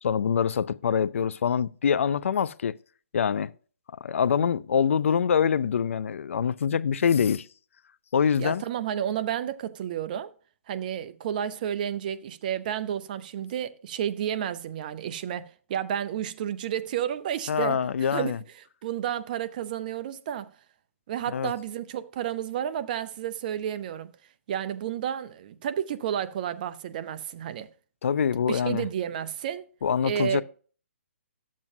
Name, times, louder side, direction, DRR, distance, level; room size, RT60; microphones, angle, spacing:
voice 1, 0.0-2.8 3.1-3.5 4.0-7.5 8.1-8.6 17.5-18.4 21.3-21.5 28.0-28.9 29.8-30.4, left 7 dB, 70° left, 0.4 m, -25 dB
voice 2, 8.4-10.3 10.7-18.4 18.8-20.5 21.1-24.1 24.5-27.7 28.5-29.7 30.0-30.4, right 10 dB, 40° right, 0.6 m, -31 dB
12.0 x 7.4 x 2.7 m
hypercardioid pair, 150°, 7 cm